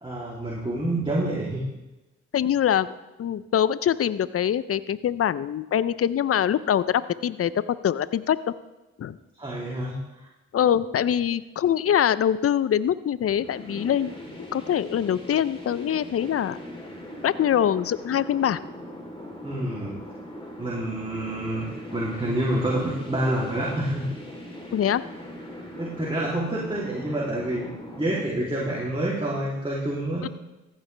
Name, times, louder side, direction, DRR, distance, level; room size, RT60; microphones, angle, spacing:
voice 1, 0.0-1.6 9.4-9.9 19.4-20.0 20.6-21.7 21.9-24.0 25.7-27.7 28.0-30.3, right 1 dB, 15° right, -5 dB, 2.9 m, -27 dB
voice 2, 2.3-2.9 3.2-8.5 9.0-9.2 10.5-14.1 14.5-16.6 17.2-18.6 24.7-25.0 30.2-30.3, left 9 dB, 50° left, 17 dB, 0.6 m, -24 dB
sound 1, 13.2-28.2, equal, 15° left, 3.5 m, -40 dB
14.5 x 9.1 x 3.4 m, 1.0 s
supercardioid pair, 40°, 31 cm